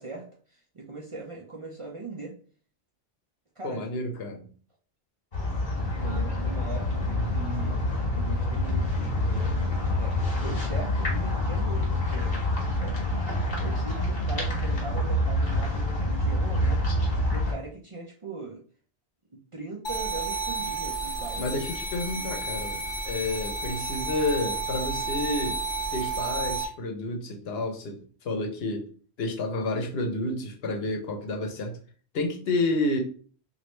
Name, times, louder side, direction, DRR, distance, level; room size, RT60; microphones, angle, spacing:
voice 1, 0.0-2.3 3.6-3.8 6.0-9.5 9.9-12.3 12.8-13.1 13.5-16.9 17.3-18.6 19.3-21.5 21.9-22.3 30.7-30.9, right 3 dB, 40° right, -2 dB, 0.5 m, -40 dB
voice 2, 3.6-4.5 21.4-25.6 25.9-28.9 29.2-31.8 32.1-33.0, left 2 dB, 75° left, 3 dB, 0.9 m, -30 dB
sound 1, 5.3-17.5, left 1 dB, 50° left, 1.3 m, -27 dB
sound 2, 19.8-26.6, right 3 dB, 35° left, 0.5 m, -31 dB
3.1 x 2.5 x 3.0 m, 0.42 s
omnidirectional pair, 1.1 m